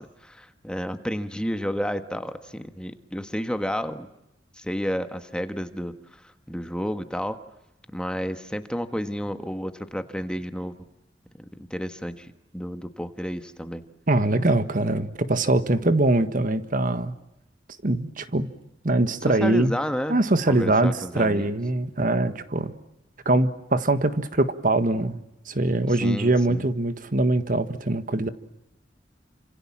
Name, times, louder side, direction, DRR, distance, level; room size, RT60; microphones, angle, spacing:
voice 1, 0.0-4.1 4.6-7.4 7.9-10.7 11.5-13.8 19.2-20.2 20.5-21.5 26.0-26.6, equal, 5° left, 1.5 m, -31 dB
voice 2, 14.1-17.1 17.8-18.5 18.8-19.7 20.1-22.7 23.2-28.3, right 2 dB, 50° right, 1.6 m, -23 dB
29.5 x 27.0 x 7.4 m
head